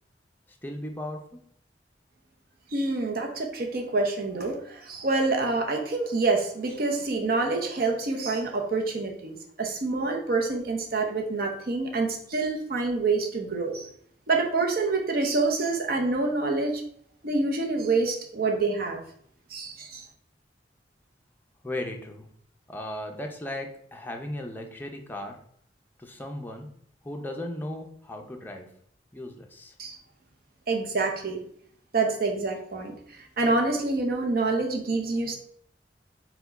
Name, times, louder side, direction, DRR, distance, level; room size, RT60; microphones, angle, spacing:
voice 1, 0.6-1.4 21.6-22.3 22.7-25.4 26.0-26.7 27.0-28.7 29.1-29.7, left 1 dB, 10° left, 2 dB, 0.5 m, -36 dB
voice 2, 2.7-13.9 14.3-16.8 17.2-19.0 19.5-20.0 29.8-30.0 30.7-31.4 31.9-32.9 33.4-35.3, right 3 dB, 55° right, 2 dB, 0.7 m, -27 dB
4.5 x 2.2 x 4.0 m, 0.65 s
head